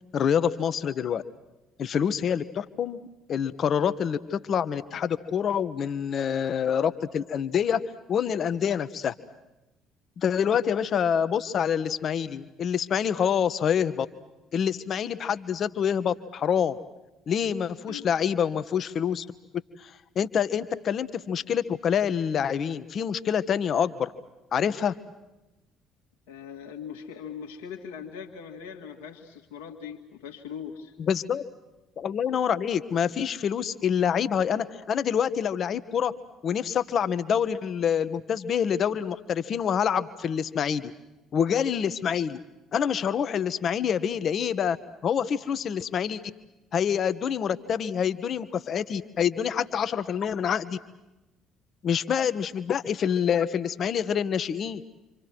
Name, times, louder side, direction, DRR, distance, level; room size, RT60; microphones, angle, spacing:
voice 1, 0.1-1.2 1.8-3.0 3.3-7.8 8.1-9.1 10.2-14.1 14.5-16.8 17.3-19.2 19.8-24.1 24.5-24.9 31.0-31.4 32.0-36.1 36.4-40.9 41.3-42.4 42.7-44.8 45.0-46.2 46.7-50.8 51.8-54.8, left 8 dB, 45° left, 12 dB, 1.2 m, -26 dB
voice 2, 26.3-30.9, left 7 dB, 70° left, 1 dB, 1.9 m, -40 dB
28.0 x 26.0 x 6.2 m, 1.0 s
figure-of-eight pair, 50°, 0 cm